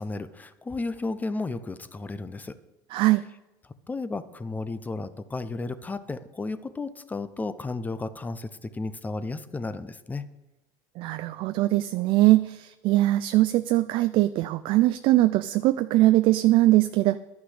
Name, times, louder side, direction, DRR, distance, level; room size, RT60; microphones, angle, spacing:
voice 1, 0.0-2.5 3.9-10.2, left 3 dB, 15° left, 13 dB, 0.8 m, -33 dB
voice 2, 2.9-3.2 11.0-17.2, right 16 dB, 60° right, 11 dB, 0.4 m, -21 dB
11.5 x 6.0 x 8.0 m, 1.0 s
supercardioid pair, 95°, 10 cm